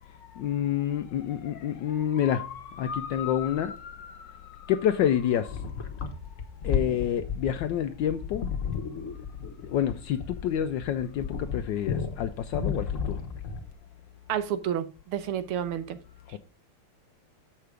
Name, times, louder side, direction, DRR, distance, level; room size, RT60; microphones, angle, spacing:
voice 1, 0.0-5.8 6.6-8.5 9.6-13.2 16.3-16.4, left 10 dB, 75° left, 1.0 m, -29 dB
sound 1, 5.5-13.7, left 6 dB, 45° left, 1.1 m, -33 dB
voice 2, 14.3-16.0, right 9 dB, 80° right, 1.7 m, -30 dB
7.5 x 5.7 x 4.9 m
omnidirectional pair, 2.4 m